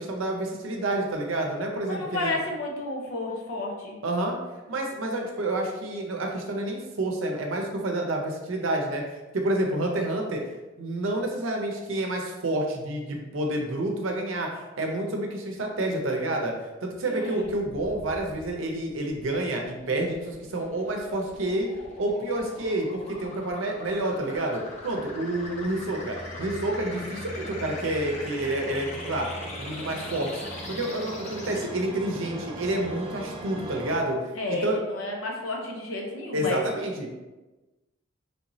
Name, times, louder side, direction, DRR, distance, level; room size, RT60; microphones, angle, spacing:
voice 1, 0.0-2.4 4.0-4.4 4.7-10.4 10.8-16.5 16.8-21.7 22.0-29.3 29.6-30.4 30.7-34.8 36.3-37.1, right 1 dB, 75° right, 2 dB, 0.6 m, -29 dB
voice 2, 1.9-4.0 17.0-17.5 34.3-36.6, left 1 dB, 90° left, 0 dB, 0.7 m, -31 dB
sound 1, 17.4-31.6, left 2 dB, 35° left, 0.6 m, -42 dB
sound 2, 24.4-34.0, right 1 dB, 25° right, 0.5 m, -40 dB
3.3 x 2.7 x 3.0 m, 1.1 s
head